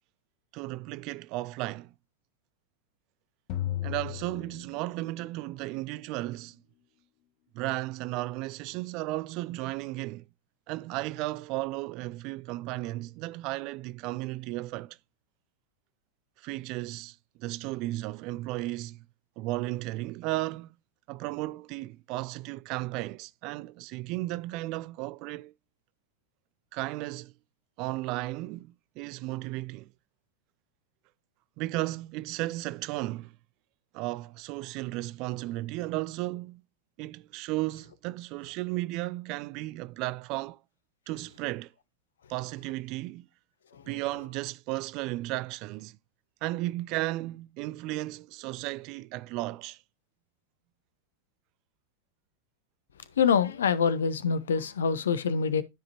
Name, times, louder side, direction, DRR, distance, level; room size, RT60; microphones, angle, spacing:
voice 1, 0.5-1.9 3.8-6.6 7.5-10.3 10.7-15.0 16.4-19.0 19.4-20.7 21.1-25.5 26.7-27.3 27.8-29.9 31.6-33.3 33.9-36.6 37.0-40.6 41.1-41.7 42.3-43.3 43.9-46.0 46.4-49.8, right 19 dB, 40° right, 0.3 m, -34 dB
sound 1, 3.5-5.3, left 12 dB, 45° left, 1.1 m, -35 dB
voice 2, 53.2-55.6, left 6 dB, 65° left, 0.7 m, -25 dB
12.5 x 5.0 x 2.8 m
figure-of-eight pair, 90°, 0 cm